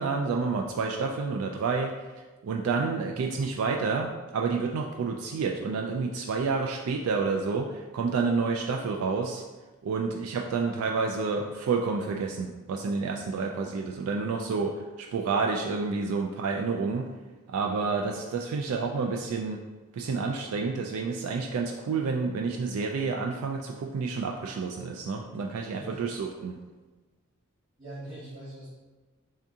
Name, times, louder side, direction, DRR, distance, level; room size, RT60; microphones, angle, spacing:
voice 1, 0.0-9.4 9.8-17.1 17.5-19.6 19.9-26.6, right 4 dB, 90° right, 2 dB, 0.3 m, -29 dB
voice 2, 25.5-26.0 27.8-28.7, right 1 dB, 30° right, -16 dB, 1.5 m, -43 dB
3.5 x 2.7 x 3.5 m, 1.2 s
head